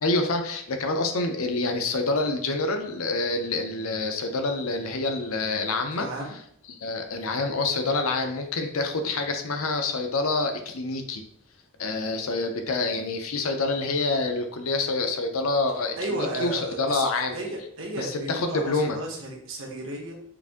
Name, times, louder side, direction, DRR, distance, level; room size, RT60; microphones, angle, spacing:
voice 1, 0.0-6.1 6.8-11.2 11.8-17.4 18.0-19.0, left 3 dB, 70° left, 5 dB, 0.6 m, -27 dB
voice 2, 5.9-6.4 16.0-17.0 17.3-20.1, right 1 dB, 60° right, -1 dB, 1.1 m, -33 dB
4.7 x 2.6 x 3.6 m, 0.67 s
head